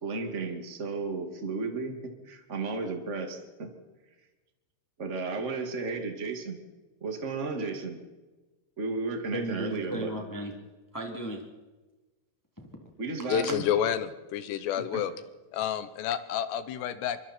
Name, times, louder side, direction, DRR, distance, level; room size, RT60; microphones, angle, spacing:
voice 1, 0.0-3.7 5.0-6.6 7.0-8.0 8.8-10.1 13.0-13.6 14.9-15.0, right 3 dB, 85° right, 4 dB, 0.6 m, -33 dB
voice 2, 9.3-10.6 10.9-11.4 12.6-12.9, right 1 dB, 5° left, 1 dB, 1.6 m, -35 dB
voice 3, 13.3-15.1 15.5-17.2, left 9 dB, 75° left, 12 dB, 2.8 m, -29 dB
25.0 x 24.5 x 4.4 m, 1.2 s
omnidirectional pair, 5.5 m